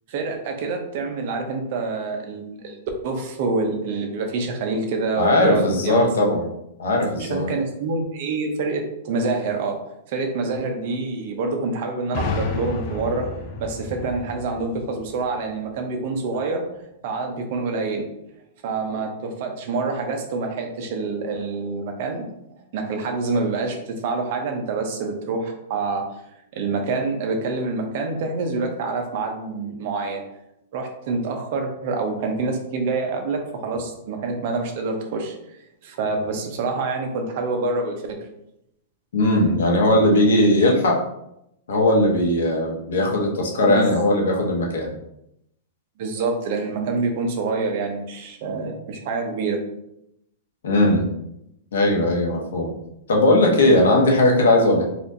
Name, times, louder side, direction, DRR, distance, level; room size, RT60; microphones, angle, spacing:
voice 1, 0.1-2.8 3.0-6.3 7.2-9.8 10.1-13.3 13.6-16.6 17.0-18.0 18.6-22.3 22.7-26.0 26.5-30.2 30.7-38.2 43.7-44.0 46.0-49.6, right 3 dB, 45° right, 3 dB, 0.6 m, -26 dB
voice 2, 5.2-6.4 6.8-7.5 39.1-41.0 41.7-44.9 50.6-51.0 51.7-52.7 53.1-54.8, left 1 dB, 90° left, 0 dB, 1.0 m, -18 dB
sound 1, 12.1-15.8, left 3 dB, 35° left, 0.4 m, -31 dB
4.2 x 2.5 x 2.6 m, 0.81 s
supercardioid pair, 170°, 0 cm